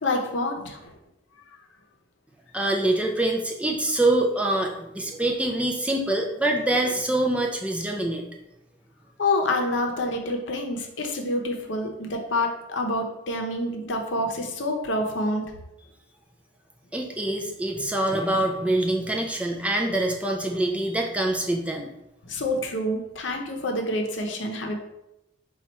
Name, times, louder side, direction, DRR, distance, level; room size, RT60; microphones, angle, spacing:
voice 1, 0.0-0.9 9.2-15.5 22.3-24.8, left 1 dB, 90° left, 3 dB, 0.7 m, -27 dB
voice 2, 2.5-8.2 16.9-21.9, right 1 dB, 5° right, 1 dB, 0.4 m, -25 dB
4.3 x 2.3 x 4.1 m, 0.88 s
head